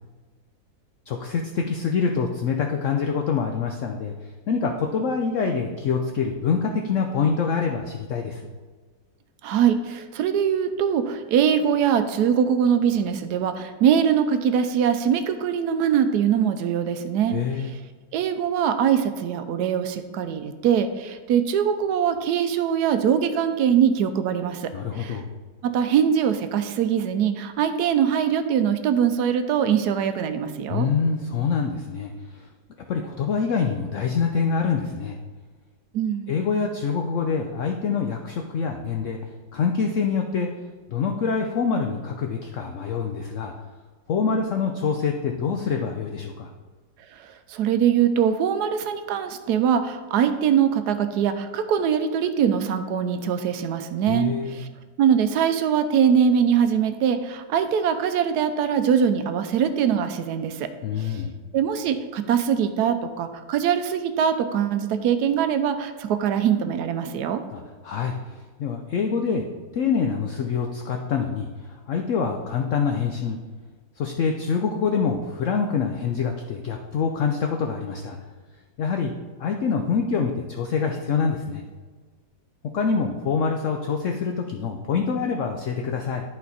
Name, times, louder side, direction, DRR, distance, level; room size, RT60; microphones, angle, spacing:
voice 1, 1.1-8.4 17.3-17.7 24.7-25.3 30.7-32.5 32.9-35.2 36.3-39.2 39.5-40.5 40.9-43.5 44.1-46.5 54.1-54.6 60.8-61.3 67.5-69.4 69.7-73.4 74.0-78.2 78.8-79.1 79.4-81.6 82.7-86.2, left 5 dB, 80° left, 3 dB, 0.6 m, -25 dB
voice 2, 9.4-17.4 18.1-25.2 25.6-30.9 35.9-36.3 47.2-54.7 55.0-60.7 61.0-61.2 61.5-67.4, right 8 dB, 70° right, 10 dB, 1.0 m, -22 dB
11.0 x 4.2 x 4.1 m, 1.4 s
omnidirectional pair, 1.9 m